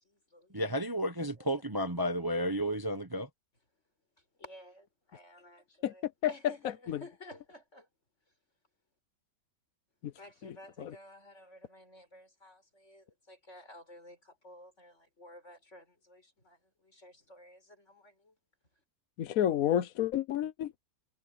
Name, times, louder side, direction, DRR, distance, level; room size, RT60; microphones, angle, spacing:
voice 1, 0.0-0.6 1.2-1.6 4.4-7.9 10.1-18.3, left 1 dB, 40° left, 6.6 m, -53 dB
voice 2, 0.5-3.3, equal, 25° right, 0.5 m, -32 dB
voice 3, 5.8-6.3 6.9-7.0 10.0-10.1 10.4-11.0 19.2-20.7, left 11 dB, 60° left, 1.1 m, -31 dB
omnidirectional pair, 1.9 m